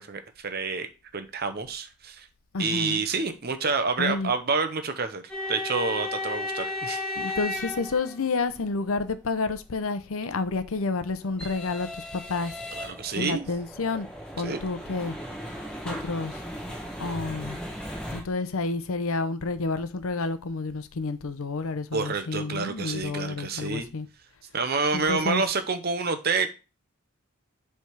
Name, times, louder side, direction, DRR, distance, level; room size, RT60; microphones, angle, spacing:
voice 1, 0.0-2.3 2.6-5.2 5.5-7.0 12.7-13.5 14.4-14.6 21.9-23.9 24.5-26.5, right 4 dB, 45° right, 0.7 m, -28 dB
voice 2, 2.5-3.0 4.0-4.3 7.2-11.9 12.1-12.5 13.2-14.1 14.4-15.1 15.8-16.3 17.0-17.6 18.1-24.1 24.9-25.4, left 3 dB, 75° left, 0.7 m, -29 dB
sound 1, 5.3-8.5 10.5-18.2, left 1 dB, 5° left, 1.2 m, -35 dB
7.2 x 3.5 x 4.6 m
head